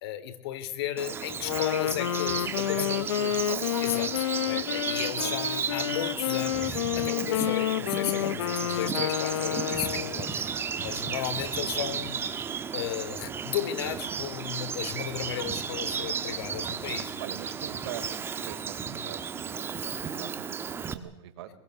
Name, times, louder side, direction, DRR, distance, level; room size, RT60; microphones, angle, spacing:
voice 1, 0.0-3.1 3.8-12.2 12.7-17.1, left 11 dB, 60° left, 11 dB, 3.6 m, -34 dB
Bird vocalization bird call bird song, 1.0-20.9, right 6 dB, 15° right, 1.5 m, -34 dB
Wind instrument woodwind instrument, 1.3-10.3, left 13 dB, 80° left, 0.9 m, -30 dB
voice 2, 2.5-4.1 4.7-4.8 5.1-5.4 10.3-10.6 17.2-21.5, right 11 dB, 65° right, 6 dB, 5.0 m, -42 dB
25.5 x 22.0 x 8.2 m, 0.76 s
supercardioid pair, 155°, 15 cm